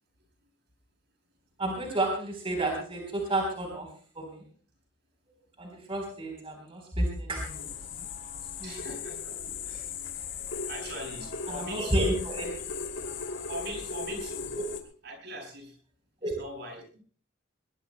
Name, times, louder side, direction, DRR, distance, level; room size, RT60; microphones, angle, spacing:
voice 1, 1.6-3.9 4.2-4.4 5.6-8.1 8.6-8.7 11.6-12.6 16.2-16.4, right 1 dB, 30° right, 1 dB, 3.9 m, -31 dB
sound 1, 7.3-14.8, left 5 dB, 75° left, 2.6 m, -37 dB
voice 2, 8.6-10.3 10.7-12.1 13.5-14.5 15.0-15.8 16.2-17.0, equal, 60° right, 2 dB, 7.6 m, -42 dB
21.5 x 21.0 x 2.2 m, 0.43 s
head